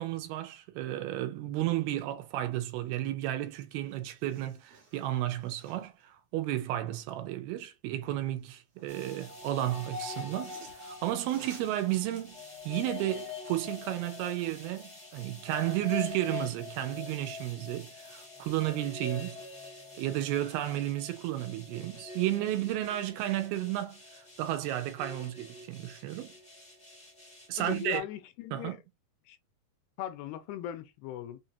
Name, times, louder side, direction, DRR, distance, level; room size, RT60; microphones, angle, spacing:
voice 1, 0.0-19.4 20.0-24.0 24.4-26.3 27.5-28.0 28.5-28.8, right 14 dB, 80° right, 2.5 m, -33 dB
sound 1, 3.4-3.5 3.8-6.0 8.2-9.2 10.0-13.4 13.8-13.9, right 4 dB, 55° right, 1.9 m, -56 dB
sound 2, 8.9-28.0, left 4 dB, 35° left, 0.7 m, -45 dB
voice 2, 27.6-28.8 29.3-29.4 30.0-31.4, left 11 dB, 85° left, 2.6 m, -39 dB
6.4 x 2.6 x 2.7 m
omnidirectional pair, 4.6 m